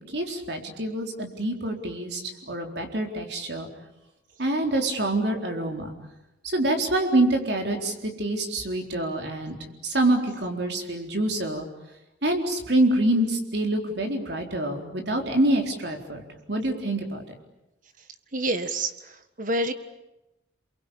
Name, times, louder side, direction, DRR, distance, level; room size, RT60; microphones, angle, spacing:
voice 1, 0.1-3.7 4.4-5.9 6.4-9.6 9.8-11.7 12.2-16.2 16.5-17.2, right 1 dB, 65° right, 3 dB, 4.1 m, -26 dB
voice 2, 18.3-19.7, right 1 dB, 45° right, 9 dB, 1.7 m, -28 dB
28.5 x 23.5 x 8.6 m, 0.93 s
head